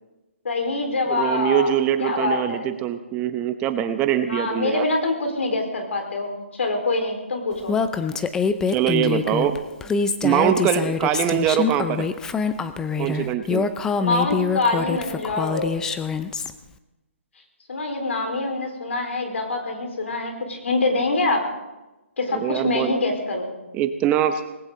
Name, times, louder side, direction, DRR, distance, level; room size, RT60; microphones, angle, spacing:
voice 1, 0.4-2.7 4.3-7.7 14.0-15.8 17.7-21.4 22.2-23.5, left 3 dB, 70° left, 3 dB, 4.5 m, -25 dB
voice 2, 1.1-4.8 8.7-9.6 10.2-12.1 13.0-13.7 22.3-22.9 23.7-24.4, right 10 dB, 20° right, 9 dB, 0.8 m, -23 dB
Female speech woman speaking, 7.7-16.5, left 5 dB, 10° left, 0.6 m, -25 dB
19.5 x 18.0 x 3.9 m, 1.0 s
hypercardioid pair, 150°, 7 cm